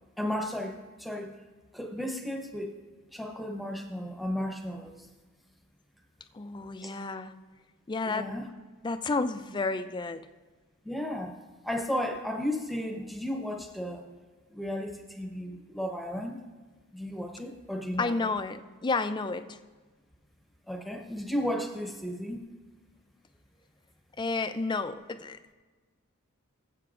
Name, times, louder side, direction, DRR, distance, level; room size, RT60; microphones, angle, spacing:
voice 1, 0.2-1.4 1.7-2.8 3.1-5.1 6.8-6.9 8.0-8.5 10.8-11.3 11.6-14.0 14.5-16.4 16.9-18.3 20.7-22.4, left 1 dB, ahead, 3 dB, 0.8 m, -34 dB
voice 2, 6.3-7.3 7.9-8.3 8.8-10.2 18.0-19.6 24.2-25.5, left 3 dB, 20° left, 10 dB, 0.4 m, -31 dB
19.0 x 7.7 x 2.5 m, 1.4 s
head